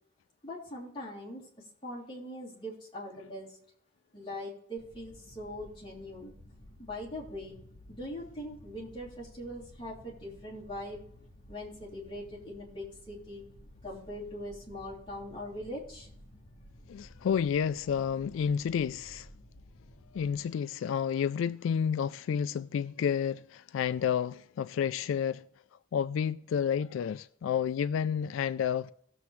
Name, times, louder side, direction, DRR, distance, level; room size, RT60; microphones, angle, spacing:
voice 1, 0.4-3.6 4.1-6.3 6.8-7.6 7.9-11.0 11.5-13.4 13.8-16.1, left 1 dB, 25° left, 3.1 m, -41 dB
sound 1, 4.8-20.4, equal, 40° left, 1.4 m, -54 dB
voice 2, 16.9-19.3 20.1-25.4 25.9-28.9, left 7 dB, 80° left, 0.3 m, -30 dB
18.0 x 7.0 x 3.2 m
head